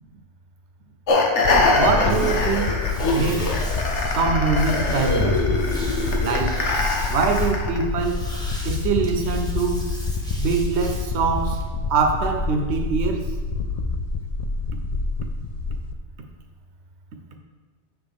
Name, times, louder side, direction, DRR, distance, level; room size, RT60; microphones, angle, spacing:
sound 1, 1.1-7.8, left 2 dB, 85° left, 1.3 m, -23 dB
sound 2, 1.4-15.9, left 3 dB, 60° left, 0.4 m, -27 dB
voice 1, 1.7-2.9 3.1-3.5 4.2-5.5 6.2-6.7 7.1-8.3 8.6-9.8 10.4-11.6 11.9-13.3, right 4 dB, 75° right, 4 dB, 1.0 m, -23 dB
sound 3, 2.1-11.6, equal, 5° left, 1.0 m, -38 dB
7.8 x 6.5 x 3.4 m, 1.4 s
omnidirectional pair, 1.2 m